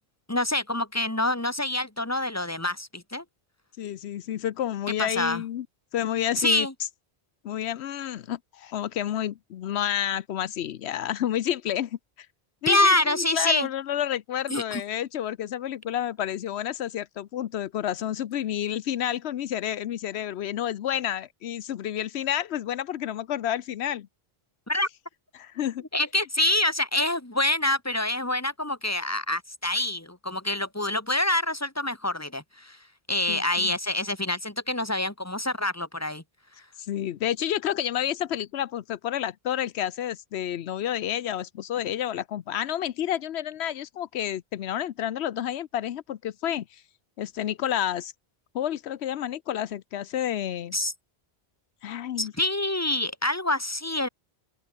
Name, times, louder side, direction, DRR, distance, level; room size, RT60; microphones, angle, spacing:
voice 1, 0.3-3.2 5.0-5.4 6.4-6.7 12.7-13.7 14.5-14.8 24.7-24.9 25.9-32.8 33.1-36.2 50.7-50.9 52.2-54.1, left 1 dB, 15° left, 2.3 m, -26 dB
voice 2, 3.8-5.7 5.9-6.7 7.4-12.0 12.6-24.1 25.3-25.8 33.3-33.8 36.8-46.8 47.2-48.1 48.5-50.7 51.8-52.3, left 11 dB, 85° left, 0.9 m, -30 dB
open air
omnidirectional pair, 1.1 m